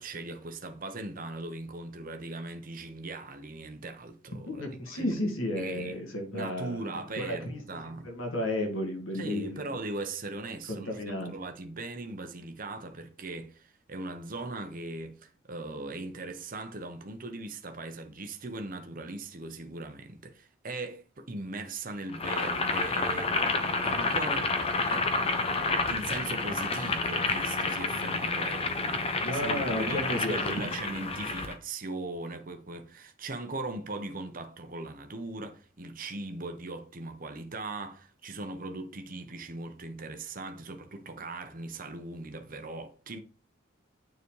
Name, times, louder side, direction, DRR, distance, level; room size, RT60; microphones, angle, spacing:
voice 1, 0.0-5.2 5.6-6.0 6.3-8.1 9.1-24.6 24.9-25.4 25.9-43.2, right 2 dB, 45° right, 0.9 m, -39 dB
voice 2, 4.5-7.6 8.0-9.6 10.7-11.3 29.2-30.7, left 1 dB, 80° left, 1.9 m, -33 dB
Boiling, 22.1-31.5, left 3 dB, 30° left, 0.6 m, -29 dB
9.5 x 4.0 x 3.2 m
head